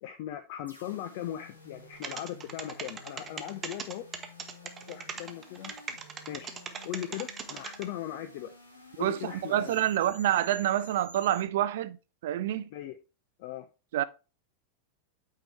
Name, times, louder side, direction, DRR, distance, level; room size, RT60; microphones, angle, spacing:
voice 1, 0.0-4.1 4.6-5.7 6.3-6.5 6.8-8.5 9.0-9.9 12.7-13.0 13.4-13.7, left 12 dB, 50° left, 0.5 m, -39 dB
sound 1, 0.6-11.4, left 2 dB, 80° left, 1.7 m, -52 dB
sound 2, 2.0-7.8, right 6 dB, 20° right, 0.9 m, -38 dB
voice 2, 9.0-12.0 12.2-12.7 13.9-14.0, right 12 dB, 55° right, 0.4 m, -27 dB
8.8 x 4.6 x 3.3 m
figure-of-eight pair, 90°, 0 cm